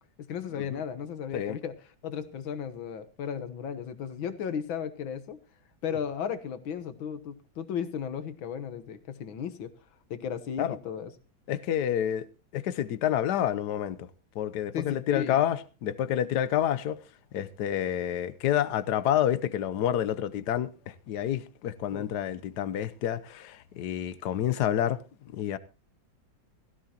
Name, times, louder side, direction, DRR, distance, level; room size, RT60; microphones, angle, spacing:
voice 1, 0.3-1.7 2.0-5.4 5.8-9.7 10.1-11.1 14.7-15.4 21.9-22.0, left 8 dB, 80° left, 2.0 m, -35 dB
voice 2, 11.5-12.3 12.5-14.0 14.3-17.0 17.3-25.0 25.3-25.6, left 10 dB, 65° left, 1.3 m, -28 dB
17.0 x 14.5 x 2.9 m
omnidirectional pair, 2.1 m